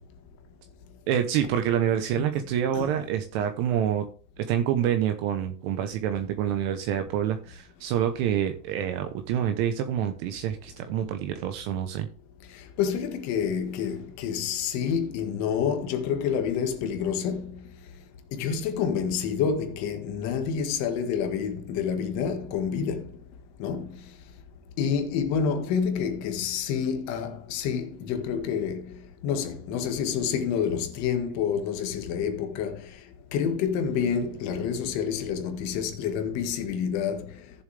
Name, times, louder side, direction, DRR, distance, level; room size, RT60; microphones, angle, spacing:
voice 1, 1.1-4.1 4.4-12.1, right 9 dB, 40° right, 1.0 m, -27 dB
voice 2, 12.5-17.6 18.3-23.1 23.6-24.1 24.8-33.0 33.3-37.4, left 7 dB, 35° left, 1.7 m, -28 dB
14.5 x 7.2 x 3.4 m
supercardioid pair, 155°, 47 cm